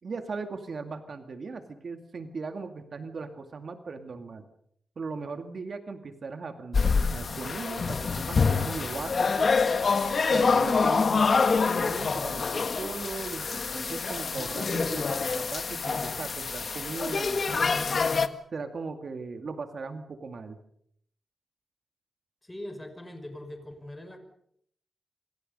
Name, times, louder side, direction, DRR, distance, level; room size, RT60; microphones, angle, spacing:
voice 1, 0.0-4.4 5.0-9.7 10.3-17.9 18.5-20.6, right 4 dB, 60° right, 7 dB, 2.3 m, -38 dB
sound 1, 6.7-18.3, left 4 dB, 55° left, 1.6 m, -26 dB
voice 2, 22.4-24.2, left 1 dB, 15° left, 7 dB, 6.0 m, -41 dB
27.0 x 24.5 x 5.5 m, 0.68 s
wide cardioid pair, 90°, 0 cm